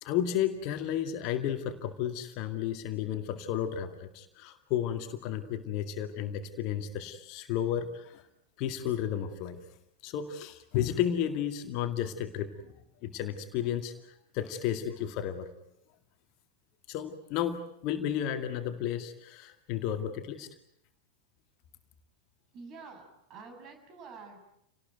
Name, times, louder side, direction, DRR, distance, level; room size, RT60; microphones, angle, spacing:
voice 1, 0.0-8.2 8.6-9.6 10.0-12.7 13.0-15.5 16.9-20.5, left 10 dB, 40° left, 7 dB, 2.2 m, -33 dB
voice 2, 22.5-24.4, right 4 dB, 35° right, 5 dB, 7.3 m, -48 dB
29.0 x 19.0 x 9.3 m, 0.79 s
figure-of-eight pair, 90°, 0 cm